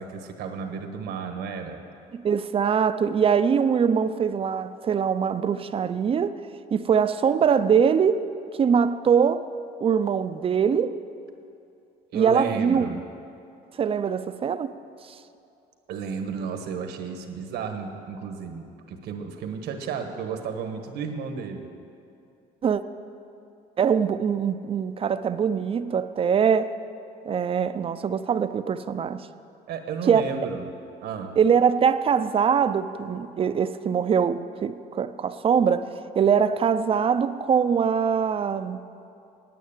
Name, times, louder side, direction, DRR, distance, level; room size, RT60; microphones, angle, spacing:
voice 1, 0.0-1.8 12.1-13.0 15.9-21.7 29.7-30.7 31.0-31.3, right 6 dB, 80° right, 1.3 m, -33 dB
voice 2, 2.1-6.4 6.7-8.3 8.6-9.5 9.8-11.0 12.1-13.0 13.8-14.7 15.1-15.2 22.6-22.8 23.8-26.7 27.3-29.3 30.1-30.4 31.4-35.9 36.2-38.8, right 7 dB, 35° right, 0.5 m, -23 dB
9.4 x 9.2 x 8.9 m
cardioid pair, 110°, 17 cm